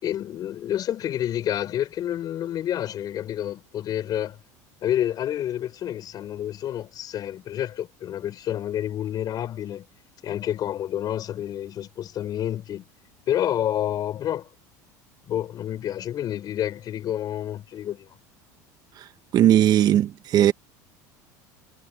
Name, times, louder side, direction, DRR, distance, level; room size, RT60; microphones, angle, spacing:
voice 1, 0.0-4.4 4.8-9.9 10.2-12.8 13.3-14.5 15.3-18.1, left 11 dB, 45° left, 6.1 m, -29 dB
voice 2, 19.3-20.5, right 11 dB, 45° right, 1.6 m, -18 dB
supercardioid pair, 110°, 9 cm